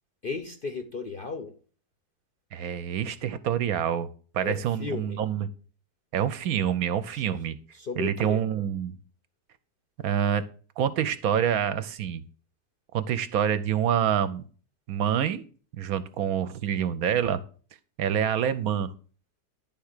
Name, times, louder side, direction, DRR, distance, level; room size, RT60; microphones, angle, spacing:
voice 1, 0.2-1.5 4.4-5.2 7.1-7.2 7.7-8.4, left 4 dB, 55° left, 7 dB, 0.6 m, -35 dB
voice 2, 2.5-4.1 4.3-5.5 6.1-7.6 8.0-9.0 10.0-10.4 10.8-12.2 12.9-14.4 14.9-15.5 15.8-17.4 18.0-18.9, right 9 dB, 70° right, 13 dB, 1.0 m, -26 dB
10.0 x 3.5 x 6.5 m, 0.41 s
omnidirectional pair, 1.7 m